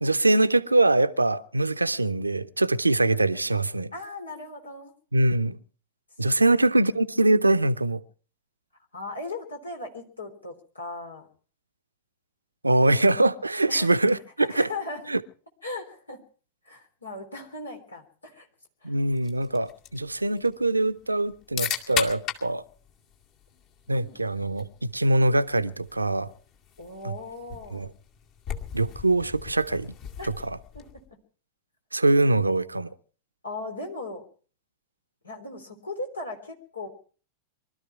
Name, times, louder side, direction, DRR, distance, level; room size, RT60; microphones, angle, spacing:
voice 1, 0.0-3.9 5.1-5.6 6.2-8.0 12.6-14.7 15.1-15.2 18.8-22.6 23.9-26.3 27.0-27.1 27.7-27.9 28.7-29.9 30.2-30.6 31.9-32.9, right 2 dB, 80° right, 0.7 m, -23 dB
voice 2, 3.9-4.9 6.4-6.5 8.9-11.3 13.7-13.9 14.4-15.1 15.6-16.2 16.7-18.5 18.8-18.9 23.9-24.2 26.8-27.9 30.2-30.3 30.7-30.8 33.4-34.2 35.2-36.9, left 2 dB, 80° left, 3.6 m, -38 dB
sound 1, 19.2-31.1, left 8 dB, 45° left, 2.3 m, -38 dB
23.5 x 13.0 x 4.6 m
figure-of-eight pair, 90°, 0 cm